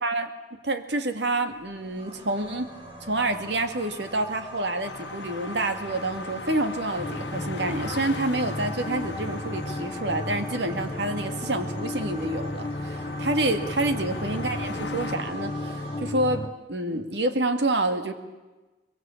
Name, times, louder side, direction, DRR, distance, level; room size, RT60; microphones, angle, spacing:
voice 1, 0.0-0.3 0.6-2.7 3.0-18.1, right 2 dB, 75° right, 7 dB, 2.2 m, -28 dB
sound 1, 1.5-16.0, right 1 dB, 30° right, 7.9 m, -42 dB
sound 2, 4.8-15.2, left 4 dB, 75° left, 1.3 m, -41 dB
sound 3, 7.0-16.5, left 2 dB, 30° left, 0.9 m, -34 dB
23.0 x 22.5 x 8.5 m, 1.2 s
head